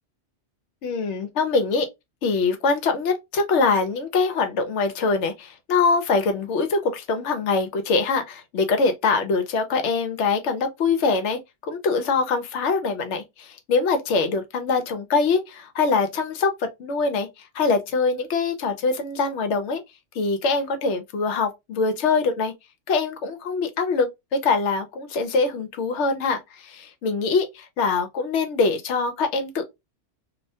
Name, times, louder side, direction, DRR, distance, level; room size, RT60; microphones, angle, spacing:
voice 1, 0.8-1.9 2.2-19.8 20.1-22.5 22.9-29.6, left 4 dB, 75° left, 0.9 m, -23 dB
2.4 x 2.1 x 2.6 m
omnidirectional pair, 1.3 m